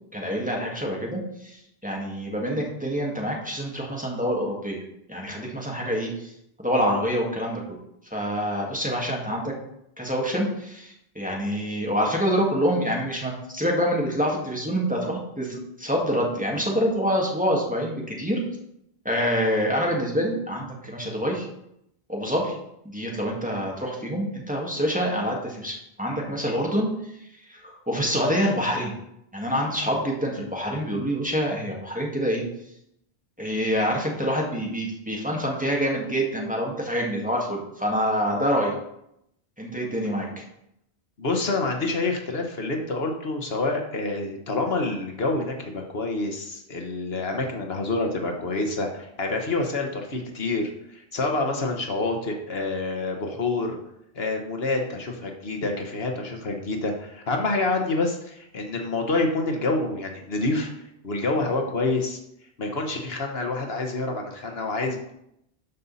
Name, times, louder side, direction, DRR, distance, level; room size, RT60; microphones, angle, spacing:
voice 1, 0.1-4.8 5.1-6.3 6.6-7.6 8.1-9.5 10.0-18.4 19.0-21.5 22.1-22.6 22.9-27.2 27.5-28.9 29.3-32.4 33.4-38.7 39.6-40.4, equal, 5° right, -2 dB, 2.0 m, -26 dB
voice 2, 41.2-53.8 54.1-60.7 61.0-62.2 62.6-65.1, left 2 dB, 70° left, 3 dB, 1.4 m, -27 dB
12.5 x 5.5 x 4.1 m, 0.79 s
omnidirectional pair, 1.1 m